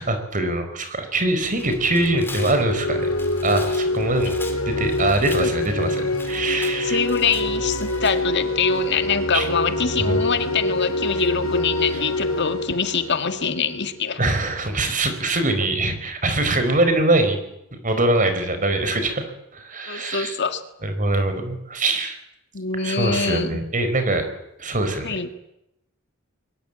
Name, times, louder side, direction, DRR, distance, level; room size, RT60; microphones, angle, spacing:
voice 1, 0.0-3.1 3.4-4.4 4.7-7.0 9.3-9.5 10.1-10.2 11.2-11.3 14.2-17.4 17.7-20.4 20.8-22.2 22.7-24.3 24.6-25.3, right 2 dB, 40° right, 8 dB, 4.6 m, -23 dB
Tearing, 1.2-8.1, left 3 dB, 10° left, 3.7 m, -41 dB
sound 1, 1.4-14.1, left 2 dB, 75° left, 5.4 m, -26 dB
voice 2, 6.8-14.2 19.9-20.6 22.5-23.5 25.0-25.3, left 5 dB, 55° left, 9 dB, 1.9 m, -24 dB
23.0 x 21.0 x 9.0 m, 0.85 s
head